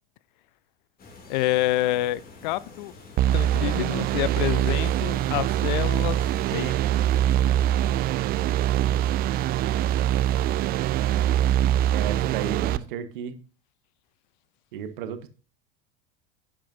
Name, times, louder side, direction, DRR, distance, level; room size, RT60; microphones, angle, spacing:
sound 1, 1.0-6.7, left 3 dB, 30° left, 2.9 m, -47 dB
voice 1, 1.3-2.9 3.3-6.2 6.5-6.8, left 16 dB, 55° left, 0.5 m, -27 dB
sound 2, 3.2-12.8, right 12 dB, 30° right, 0.5 m, -23 dB
voice 2, 11.9-13.4 14.7-15.3, right 8 dB, 60° right, 1.4 m, -33 dB
11.0 x 8.8 x 2.7 m
figure-of-eight pair, 80°, 29 cm